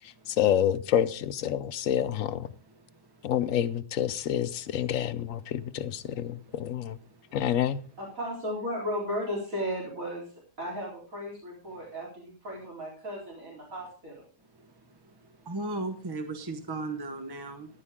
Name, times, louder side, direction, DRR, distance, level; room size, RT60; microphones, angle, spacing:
voice 1, 0.3-2.5 3.2-7.0 7.3-7.8, left 10 dB, 80° left, 1.1 m, -28 dB
voice 2, 8.0-10.2 10.6-14.2, equal, 85° right, 4.3 m, -35 dB
voice 3, 15.5-17.7, right 2 dB, 20° right, 1.1 m, -35 dB
14.0 x 11.0 x 3.6 m
omnidirectional pair, 1.4 m